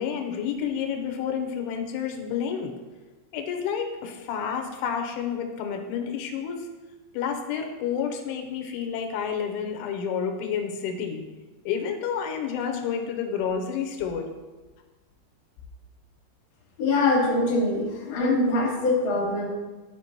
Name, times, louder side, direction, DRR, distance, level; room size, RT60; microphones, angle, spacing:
voice 1, 0.0-2.7 3.3-6.7 7.1-11.3 11.7-14.3, left 7 dB, 90° left, 4 dB, 3.2 m, -30 dB
voice 2, 16.8-19.4, left 2 dB, 70° left, -3 dB, 1.2 m, -23 dB
12.0 x 5.1 x 2.9 m, 1.2 s
omnidirectional pair, 5.5 m